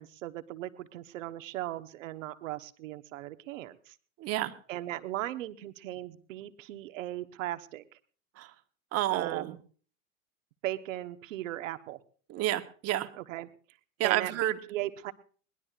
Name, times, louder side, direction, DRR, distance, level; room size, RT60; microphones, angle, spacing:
voice 1, 0.0-3.9 4.7-7.8 9.1-9.6 10.6-12.0 13.2-13.5 14.0-15.1, right 14 dB, 65° right, 9 dB, 1.2 m, -38 dB
voice 2, 4.2-4.5 8.4-8.5 8.9-9.6 12.3-13.1 14.0-14.5, right 14 dB, 35° right, 9 dB, 1.2 m, -29 dB
21.5 x 19.0 x 2.5 m, 0.43 s
hypercardioid pair, 100°, 42 cm